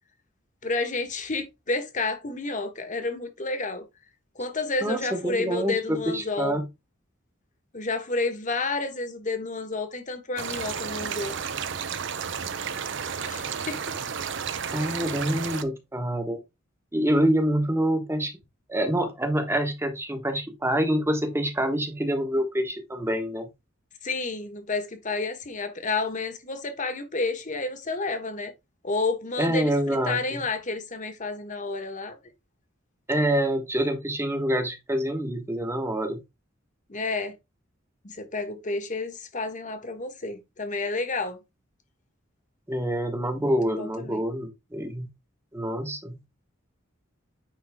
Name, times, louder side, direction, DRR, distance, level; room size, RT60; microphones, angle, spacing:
voice 1, 0.6-3.8 4.3-6.6 7.7-11.4 13.3-13.8 24.0-28.5 28.8-32.2 36.9-37.3 38.0-41.4 43.3-44.2, left 3 dB, 40° left, 1.3 m, -30 dB
voice 2, 4.8-6.6 14.7-16.4 16.9-18.3 18.7-23.5 29.4-30.2 33.1-36.2 42.7-45.1 45.5-46.2, right 1 dB, 15° right, 1.2 m, -26 dB
sound 1, 10.4-15.6, right 7 dB, 65° right, 0.7 m, -32 dB
9.3 x 3.9 x 3.5 m
head